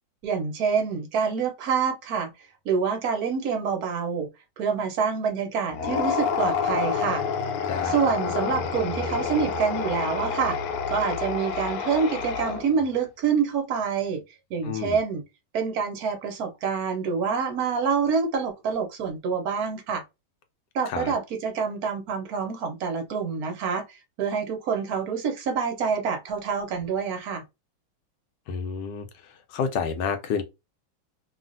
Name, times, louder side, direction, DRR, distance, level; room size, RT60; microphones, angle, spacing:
voice 1, 0.2-2.3 2.6-4.3 4.6-7.2 7.8-10.6 10.9-14.2 14.5-15.2 15.5-20.0 20.7-23.8 24.2-27.4, right 6 dB, 60° right, 1.0 m, -26 dB
sound 1, 5.7-12.9, left 5 dB, 90° left, 1.5 m, -28 dB
voice 2, 14.6-15.0 20.9-21.1 28.5-29.1 29.5-30.4, left 6 dB, 70° left, 1.1 m, -29 dB
3.1 x 2.4 x 2.5 m
omnidirectional pair, 2.3 m